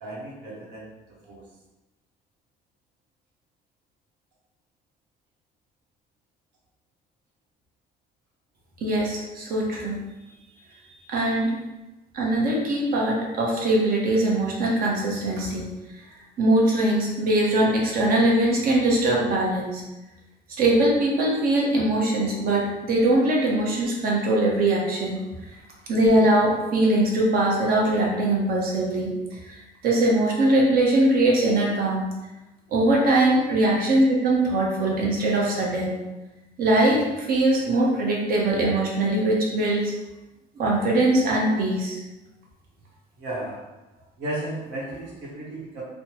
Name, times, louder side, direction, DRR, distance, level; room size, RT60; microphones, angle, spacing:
voice 1, 0.0-0.9 1.2-1.4 43.2-43.6 44.2-45.8, right 1 dB, 80° right, -4 dB, 1.0 m, -34 dB
voice 2, 8.8-10.0 11.1-11.5 12.1-15.6 16.4-19.8 20.6-25.2 25.9-29.5 29.8-32.0 32.7-35.9 36.6-39.9 40.6-42.0, right 1 dB, 60° right, -2 dB, 0.9 m, -21 dB
3.2 x 2.1 x 2.9 m, 1.1 s
cardioid pair, 110°, 17 cm